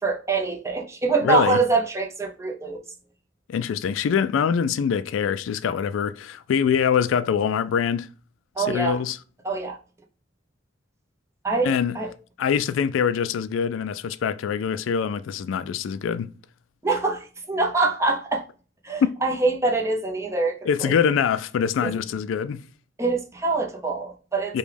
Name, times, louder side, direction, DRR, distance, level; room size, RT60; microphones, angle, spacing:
voice 1, 0.0-2.8 8.6-9.0 9.4-9.8 11.4-12.1 16.8-18.4 18.8-20.9 21.8-21.9 23.0-24.6, right 3 dB, 15° right, 0.7 m, -24 dB
voice 2, 1.2-1.6 3.5-8.1 8.6-9.2 11.6-12.0 12.4-16.3 19.0-19.1 20.6-22.6 24.5-24.6, left 7 dB, 90° left, 0.3 m, -24 dB
5.1 x 2.3 x 3.3 m
head